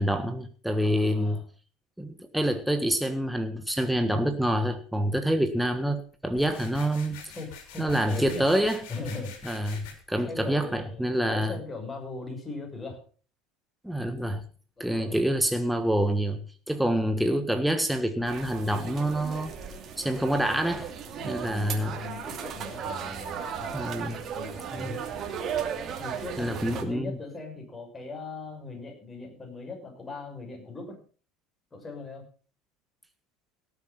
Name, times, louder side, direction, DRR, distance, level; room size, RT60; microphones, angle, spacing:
voice 1, 0.0-1.4 2.0-7.2 7.8-8.8 9.4-11.5 13.8-14.5 14.8-19.5 20.0-20.9 21.2-22.0 23.7-24.2 24.7-25.0 26.4-27.2, equal, 5° right, 6 dB, 1.5 m, -27 dB
voice 2, 0.8-1.4 7.3-8.5 8.9-9.4 10.2-13.0 14.8-15.2 16.7-17.0 21.2-25.1 26.0-31.0 31.7-32.3, left 3 dB, 20° left, 1 dB, 6.3 m, -40 dB
sound 1, 6.3-9.9, left 6 dB, 70° left, 3.9 m, -45 dB
sound 2, 18.3-26.8, right 7 dB, 45° right, 2.6 m, -36 dB
17.5 x 7.3 x 5.8 m, 0.41 s
hypercardioid pair, 80°, 0 cm